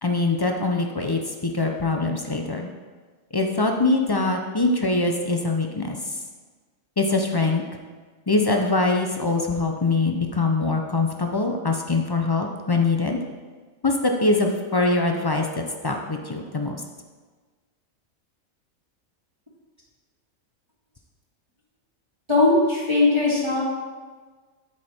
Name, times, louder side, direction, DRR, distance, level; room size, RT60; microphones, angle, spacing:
voice 1, 0.0-2.7 3.3-6.2 7.0-7.6 8.3-13.2 13.8-16.8, left 3 dB, 40° left, 3 dB, 0.3 m, -23 dB
voice 2, 22.3-23.6, left 2 dB, 20° right, -7 dB, 1.9 m, -19 dB
12.0 x 4.9 x 4.4 m, 1.4 s
omnidirectional pair, 1.5 m